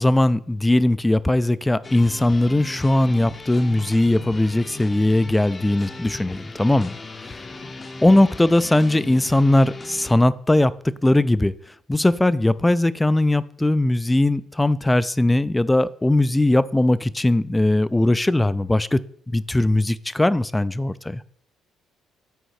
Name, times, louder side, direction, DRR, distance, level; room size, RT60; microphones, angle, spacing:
voice 1, 0.0-7.0 7.2-7.4 8.0-11.5 11.9-19.0 19.3-21.2, left 1 dB, 10° left, 18 dB, 0.3 m, -19 dB
sound 1, 1.8-10.1, left 3 dB, 30° left, 0.7 m, -38 dB
6.4 x 4.2 x 4.7 m, 0.62 s
supercardioid pair, 75°, 0 cm